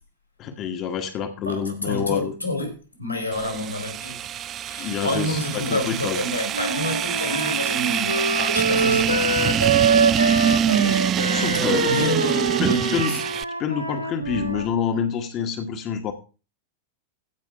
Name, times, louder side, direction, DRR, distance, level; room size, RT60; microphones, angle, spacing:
voice 1, 0.4-2.3 4.8-6.2 11.3-12.0 12.6-13.2 13.6-16.1, left 7 dB, 35° left, 1.3 m, -27 dB
voice 2, 1.4-4.2 4.6-9.8 11.5-13.2, left 1 dB, 90° left, 4.1 m, -29 dB
sound 1, 3.3-13.4, right 9 dB, 30° right, 0.4 m, -24 dB
Wind instrument woodwind instrument, 6.5-14.7, right 3 dB, 90° right, 1.2 m, -25 dB
15.5 x 5.5 x 4.9 m
figure-of-eight pair, 90°, 0 cm